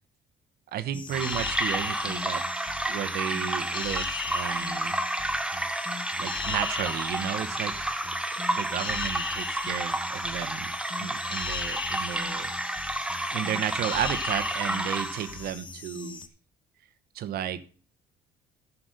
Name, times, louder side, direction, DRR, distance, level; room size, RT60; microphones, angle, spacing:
voice 1, 0.7-2.4 2.9-5.0 6.2-7.9 8.5-10.7 11.0-12.5 13.3-16.2 17.1-17.7, right 10 dB, 65° right, 11 dB, 1.1 m, -33 dB
sound 1, 0.9-16.3, left 5 dB, 30° left, 1.1 m, -37 dB
sound 2, 1.1-15.4, right 1 dB, 5° right, 0.8 m, -31 dB
11.5 x 6.0 x 6.5 m, 0.41 s
cardioid pair, 110°, 17 cm